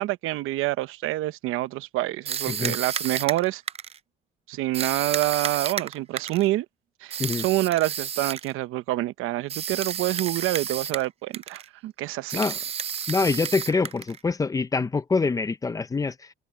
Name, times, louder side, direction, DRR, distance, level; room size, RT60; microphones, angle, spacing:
voice 1, 0.0-3.6 4.5-6.7 7.0-12.4, right 16 dB, 80° right, 0.9 m, -27 dB
sound 1, 2.2-4.0 4.7-6.5 7.1-8.5 9.5-11.1 11.3-11.7 12.3-14.2, right 8 dB, 30° right, 0.5 m, -31 dB
voice 2, 2.5-2.8 7.2-7.5 12.3-12.6 13.1-16.3, left 4 dB, 15° left, 0.6 m, -25 dB
cardioid pair, 145°, 21 cm